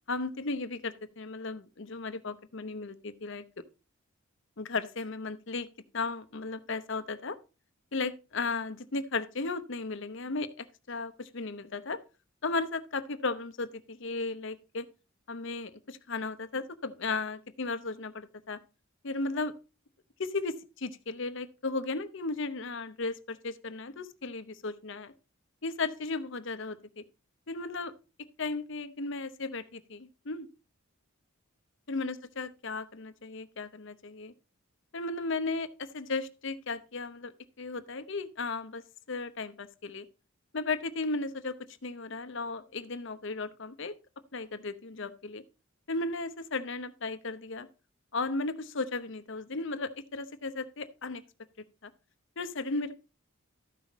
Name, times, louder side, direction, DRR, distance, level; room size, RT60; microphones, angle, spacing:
voice 1, 0.1-3.4 4.6-5.7 5.9-7.4 7.9-12.0 12.4-14.9 15.3-18.6 19.0-19.5 20.2-25.1 25.6-27.0 27.5-27.9 28.4-30.5 31.9-34.3 34.9-37.3 37.6-38.8 39.1-40.0 40.5-41.5 41.8-43.9 44.3-45.4 45.9-47.7 48.1-51.2 51.8-51.9 52.4-53.0, left 3 dB, 55° left, 0.8 m, -35 dB
13.5 x 5.6 x 4.0 m
head